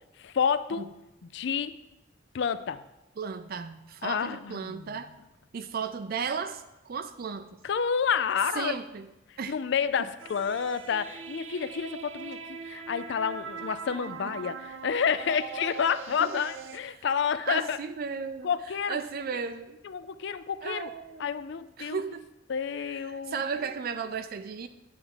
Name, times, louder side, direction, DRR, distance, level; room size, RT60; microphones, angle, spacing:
voice 1, 0.2-0.9 1.2-1.7 2.3-2.8 4.0-5.0 7.6-8.8 9.5-17.8 18.4-19.0 19.8-20.9 21.2-22.0 22.5-23.4, left 7 dB, 65° left, 13 dB, 0.4 m, -29 dB
voice 2, 3.2-5.1 5.5-7.5 8.6-9.1 9.4-9.5 16.2-16.5 16.9-17.0 17.4-18.5 18.9-19.8 20.6-21.3 21.8-22.3 23.1-24.7, right 6 dB, 50° right, 10 dB, 0.4 m, -35 dB
sound 1, 10.2-16.8, right 6 dB, 80° right, 0.8 m, -41 dB
10.0 x 3.5 x 7.2 m, 0.96 s
head